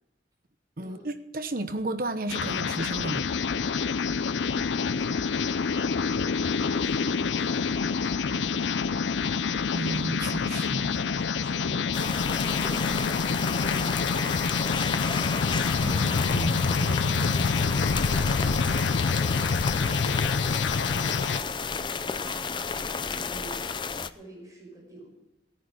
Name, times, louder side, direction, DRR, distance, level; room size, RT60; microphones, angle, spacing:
voice 1, 0.8-3.3 9.7-10.9 15.8-17.6, right 2 dB, 55° right, 1.1 m, -34 dB
sound 1, 2.3-21.4, left 5 dB, 90° left, 0.5 m, -27 dB
voice 2, 4.4-6.2 6.6-9.2 10.2-15.3 17.5-19.2 19.7-22.6 23.0-25.1, right 1 dB, 20° right, 6.2 m, -47 dB
sound 2, 11.9-24.1, left 5 dB, 25° left, 0.5 m, -32 dB
16.5 x 10.0 x 4.8 m
head